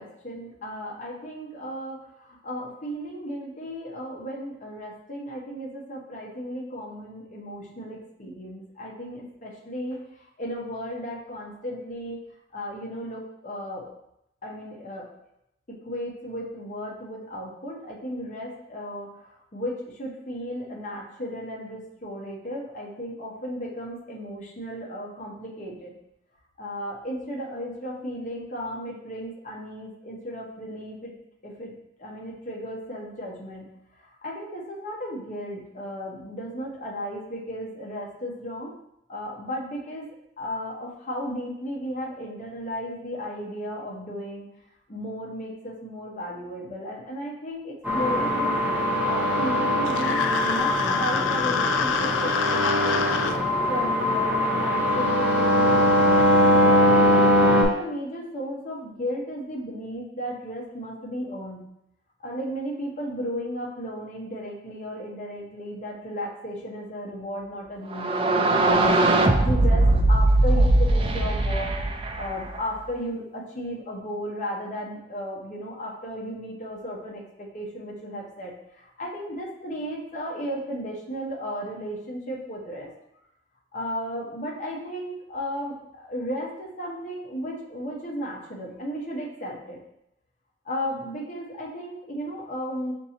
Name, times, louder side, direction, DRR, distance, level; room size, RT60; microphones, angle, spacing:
voice 1, 0.0-10.0 10.4-12.2 12.5-13.9 14.4-15.1 15.8-25.9 26.6-31.1 31.4-31.7 32.0-38.8 39.1-40.1 40.4-44.5 44.9-48.6 49.0-53.4 53.7-56.2 56.9-61.7 62.2-68.1 68.6-71.8 72.1-82.9 83.7-89.8 90.6-92.9, equal, 45° left, -3 dB, 0.8 m, -34 dB
sound 1, 47.8-57.6, equal, 10° right, 0.9 m, -21 dB
sound 2, 49.9-53.4, left 6 dB, 85° left, 0.3 m, -27 dB
sound 3, 67.9-72.7, right 2 dB, 30° right, 0.3 m, -20 dB
6.0 x 2.7 x 2.8 m, 0.79 s
head